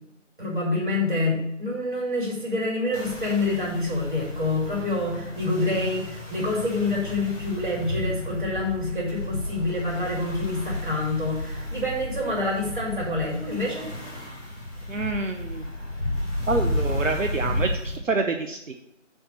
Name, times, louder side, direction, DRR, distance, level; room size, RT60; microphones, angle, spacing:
voice 1, 0.4-13.8, left 2 dB, 40° right, -4 dB, 2.6 m, -27 dB
sound 1, 2.9-18.0, left 1 dB, 15° left, 2.9 m, -32 dB
voice 2, 14.9-15.7 16.5-18.7, right 3 dB, 80° right, 5 dB, 0.7 m, -27 dB
7.0 x 3.6 x 6.3 m, 0.83 s
figure-of-eight pair, 160°, 38 cm